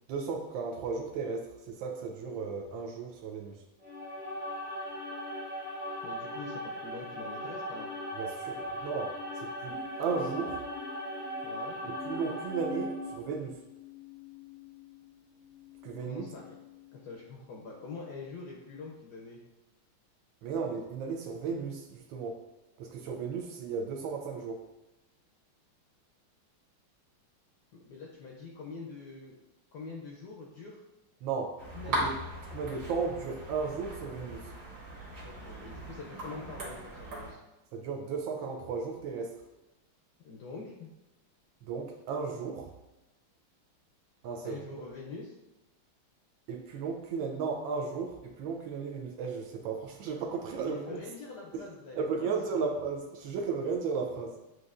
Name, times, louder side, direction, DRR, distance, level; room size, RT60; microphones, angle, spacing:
voice 1, 0.1-3.6 8.2-10.6 11.8-13.6 15.8-16.3 20.4-22.4 22.8-24.6 31.2-31.5 31.9-32.2 32.5-34.5 37.7-39.4 41.6-42.7 44.2-44.6 46.5-51.0 51.5-51.6 51.9-54.4, right 5 dB, 75° right, 2 dB, 1.2 m, -35 dB
sound 1, 3.8-13.3, equal, 5° left, 0.6 m, -39 dB
voice 2, 6.0-7.9 11.4-11.8 16.1-16.6 16.9-19.4 27.7-29.4 29.7-30.8 31.7-32.1 35.2-37.4 40.2-40.9 44.4-45.4 50.6-52.4, left 4 dB, 75° left, -2 dB, 1.0 m, -44 dB
sound 2, 9.7-17.1 17.8-18.3, left 3 dB, 90° left, 1.6 m, -46 dB
sound 3, 31.6-37.3, right 1 dB, 45° right, 1.7 m, -39 dB
7.5 x 2.5 x 2.4 m, 0.99 s
omnidirectional pair, 2.3 m